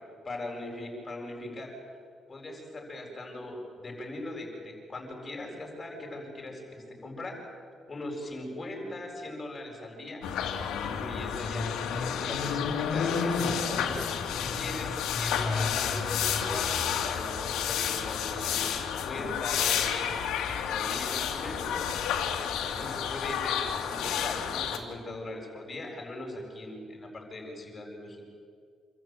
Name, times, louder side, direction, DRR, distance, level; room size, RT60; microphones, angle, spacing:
voice 1, 0.0-1.7 2.3-7.4 7.9-10.2 10.8-20.2 20.7-21.8 22.6-28.3, left 1 dB, 30° left, 1 dB, 7.5 m, -40 dB
sound 1, 10.2-24.8, left 7 dB, 90° left, 2.4 m, -30 dB
26.5 x 13.5 x 9.3 m, 2.2 s
cardioid pair, 90°, 0 cm